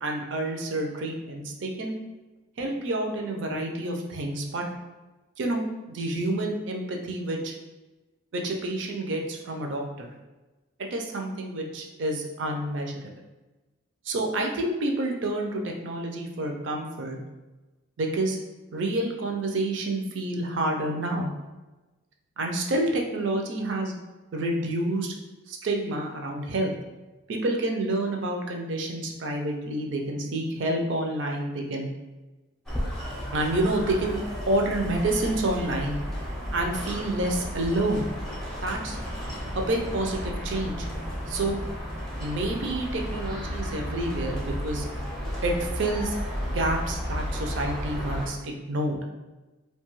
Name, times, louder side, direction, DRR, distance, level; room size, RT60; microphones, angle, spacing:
voice 1, 0.0-1.9 2.6-4.6 5.4-7.5 8.3-10.1 10.9-13.1 14.1-17.2 18.0-18.4 18.7-21.3 22.4-23.9 24.3-25.1 25.5-26.7 27.3-31.9 33.3-34.2 34.5-36.0 36.5-38.1 38.6-39.0 39.5-40.9 41.3-41.6 42.2-44.9 45.4-46.2 46.5-49.0, right 1 dB, 65° right, 2 dB, 0.4 m, -28 dB
sound 1, 32.7-48.3, equal, ahead, 0.5 m, -33 dB
2.6 x 2.2 x 3.0 m, 1.1 s
head